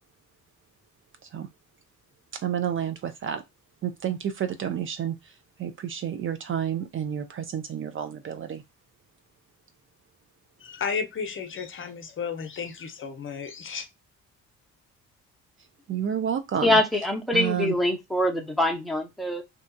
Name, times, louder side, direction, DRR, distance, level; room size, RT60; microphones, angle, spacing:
voice 1, 2.4-3.4 3.8-5.2 5.6-8.6 15.9-16.8 17.3-17.7, right 9 dB, 45° right, 0.4 m, -30 dB
voice 2, 10.6-13.9, left 6 dB, 40° left, 0.6 m, -33 dB
voice 3, 16.6-19.4, left 1 dB, ahead, 0.6 m, -24 dB
2.7 x 2.3 x 2.6 m
cardioid pair, 90°, 30 cm